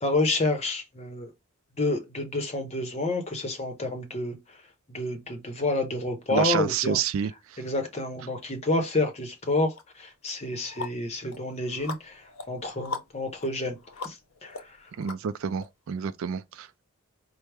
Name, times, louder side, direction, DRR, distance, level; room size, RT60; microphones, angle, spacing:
voice 1, 0.0-1.3 1.8-4.4 4.9-7.0 7.6-13.8 14.0-14.2 14.4-14.7, left 2 dB, 30° left, 0.7 m, -29 dB
voice 2, 6.3-7.3 15.0-16.8, right 7 dB, 65° right, 0.3 m, -28 dB
sound 1, 9.7-9.8 10.3-15.7, left 4 dB, 70° left, 0.7 m, -41 dB
4.5 x 2.0 x 3.4 m
head